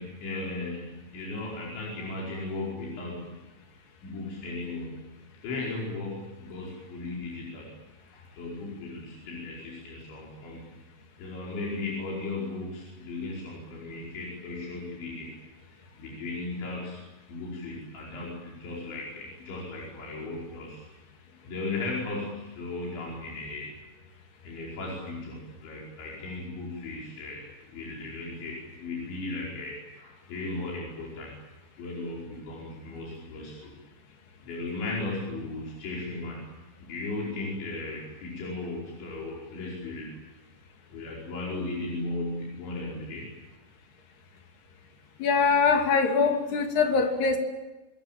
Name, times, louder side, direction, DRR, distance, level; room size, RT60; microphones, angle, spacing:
voice 1, 0.0-3.4 4.0-5.1 5.4-7.7 8.1-10.6 11.2-15.3 16.0-17.0 17.3-20.9 21.4-23.7 24.4-27.4 27.7-31.3 31.8-33.7 34.4-36.4 36.8-40.1 40.9-43.3, left 2 dB, 80° left, -3 dB, 7.5 m, -36 dB
voice 2, 45.2-47.4, left 5 dB, 65° left, 5 dB, 4.6 m, -23 dB
27.0 x 21.0 x 9.0 m, 1.1 s
omnidirectional pair, 5.2 m